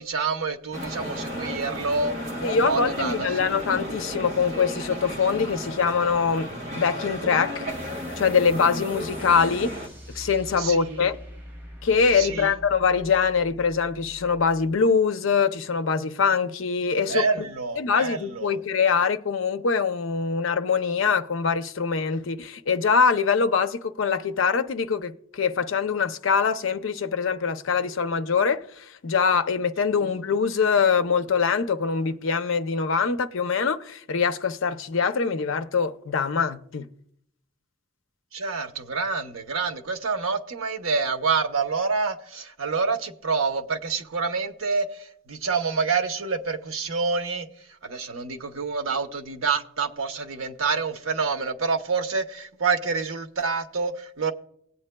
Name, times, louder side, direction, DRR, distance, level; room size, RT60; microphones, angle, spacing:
voice 1, 0.0-2.1 2.5-3.5 10.6-11.0 12.1-12.6 17.1-18.6 30.0-30.1 38.3-47.5 47.8-54.3, right 4 dB, 80° right, 0.8 m, -27 dB
sound 1, 0.7-9.9, equal, 30° right, 1.3 m, -34 dB
voice 2, 2.4-7.7 8.2-9.8 10.1-11.2 11.8-17.2 17.8-36.9, left 5 dB, 70° left, 0.5 m, -23 dB
sound 2, 7.7-14.8, equal, 10° right, 0.8 m, -44 dB
18.5 x 8.4 x 2.2 m
head